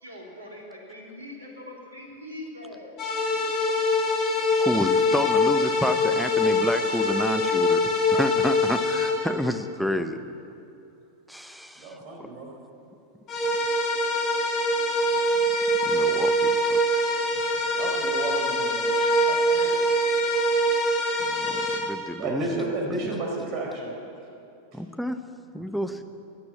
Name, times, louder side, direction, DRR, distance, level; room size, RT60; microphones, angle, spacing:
voice 1, 0.0-2.9 3.8-3.9, left 1 dB, 75° right, -1 dB, 3.2 m, -42 dB
sound 1, 3.0-9.1 13.3-21.8, left 1 dB, 30° left, 3.8 m, -23 dB
voice 2, 4.6-7.8 8.1-10.2 11.3-12.0 15.8-17.1 21.2-21.6 21.9-22.7 23.0-23.1 24.7-25.2 25.5-26.0, equal, ahead, 9 dB, 0.9 m, -29 dB
voice 3, 11.8-12.5 17.7-19.8 22.2-23.9 24.7-24.8, right 2 dB, 40° right, 0 dB, 4.3 m, -32 dB
16.0 x 9.7 x 9.4 m, 2.7 s
figure-of-eight pair, 90°, 0 cm